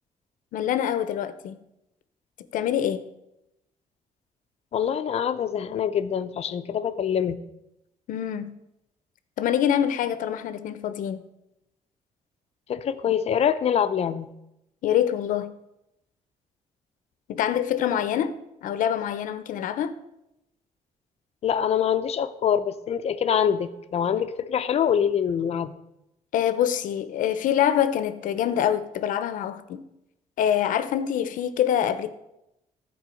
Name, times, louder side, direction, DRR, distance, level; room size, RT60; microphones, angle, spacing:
voice 1, 0.5-1.6 2.5-3.0 8.1-8.6 9.4-11.2 14.8-15.6 17.3-18.3 18.6-19.9 26.3-29.8 30.4-32.1, left 10 dB, 85° left, 0.8 m, -25 dB
voice 2, 4.7-7.4 12.7-14.3 21.4-25.7, left 8 dB, 50° left, 0.7 m, -25 dB
13.5 x 4.7 x 7.7 m
cardioid pair, 130°, 13 cm